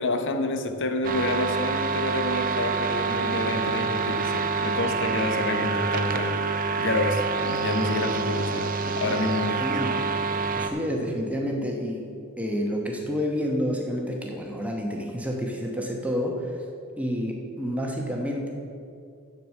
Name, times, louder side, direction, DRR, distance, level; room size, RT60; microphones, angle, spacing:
voice 1, 0.0-6.5 6.8-10.0, left 2 dB, 55° left, 7 dB, 0.8 m, -28 dB
sound 1, 1.0-10.7, right 4 dB, 40° right, 0.6 m, -27 dB
voice 2, 9.6-9.9 10.5-12.0 12.4-16.6 17.0-18.5, equal, 5° right, 0 dB, 1.0 m, -29 dB
7.7 x 6.8 x 7.4 m, 2.4 s
head